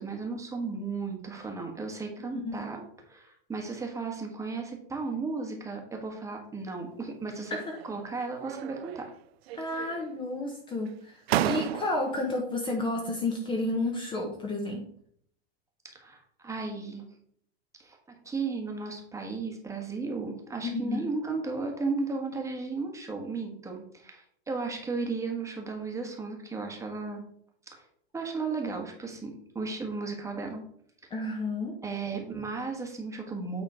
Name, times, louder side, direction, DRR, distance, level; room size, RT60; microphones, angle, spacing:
voice 1, 0.0-7.6 7.8-9.1 9.7-9.9 15.8-17.0 17.8-18.0 18.2-27.2 27.7-27.9 28.1-30.6 31.0-31.1 31.8-33.6, right 4 dB, 10° right, 2 dB, 1.3 m, -35 dB
sound 1, 7.4-8.0 8.4-9.2 9.5-10.2 10.9-11.0 11.3-12.2, right 13 dB, 90° right, 0.5 m, -33 dB
voice 2, 9.5-14.9 20.6-21.0 31.1-31.7, left 2 dB, 15° left, 1 dB, 1.0 m, -31 dB
9.0 x 3.7 x 4.8 m, 0.64 s
supercardioid pair, 145°, 30 cm